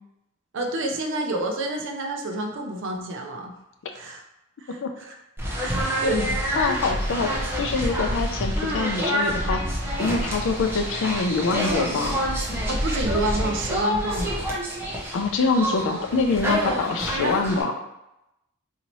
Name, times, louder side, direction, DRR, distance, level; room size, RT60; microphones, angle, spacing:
voice 1, 0.5-3.5 3.9-4.2 4.6-5.1 5.6-6.4 12.7-14.4 16.6-16.8, right 2 dB, 60° right, 2 dB, 0.6 m, -29 dB
sound 1, 5.4-17.6, equal, 10° right, 0.7 m, -27 dB
voice 2, 6.6-9.6 10.0-12.2 15.1-17.8, left 4 dB, 60° left, 4 dB, 0.4 m, -25 dB
4.1 x 2.7 x 3.0 m, 0.87 s
head